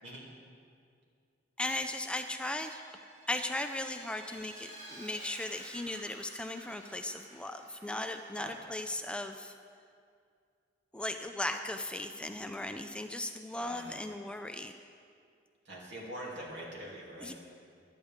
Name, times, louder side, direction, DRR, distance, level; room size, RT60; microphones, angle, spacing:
voice 1, 1.6-9.5 10.9-14.7 17.2-17.3, left 1 dB, 5° left, 6 dB, 0.4 m, -37 dB
Vehicle, 2.2-8.6, right 1 dB, 45° right, 3.1 m, -52 dB
voice 2, 13.5-14.0 15.6-17.3, right 1 dB, 65° right, -3 dB, 2.9 m, -44 dB
18.0 x 11.5 x 3.6 m, 2.3 s
head